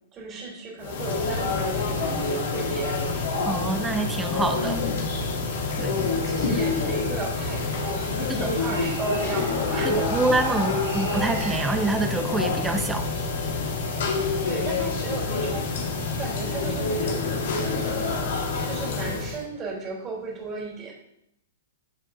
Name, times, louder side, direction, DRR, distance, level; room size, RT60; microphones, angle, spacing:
voice 1, 0.1-3.0 6.1-10.0 14.3-15.7 16.1-18.2 18.6-20.9, right 3 dB, 25° right, -2 dB, 3.1 m, -35 dB
sound 1, 0.8-19.4, left 4 dB, 60° left, 1.5 m, -27 dB
sound 2, 1.3-18.2, right 3 dB, 75° right, 1.5 m, -43 dB
voice 2, 3.5-4.8 5.8-6.0 8.3-8.5 9.8-13.1, right 3 dB, 10° right, 6 dB, 0.9 m, -26 dB
Breathing, 8.6-12.8, left 1 dB, 30° left, 1.5 m, -36 dB
14.0 x 5.0 x 2.6 m, 0.77 s
figure-of-eight pair, 110°, 0 cm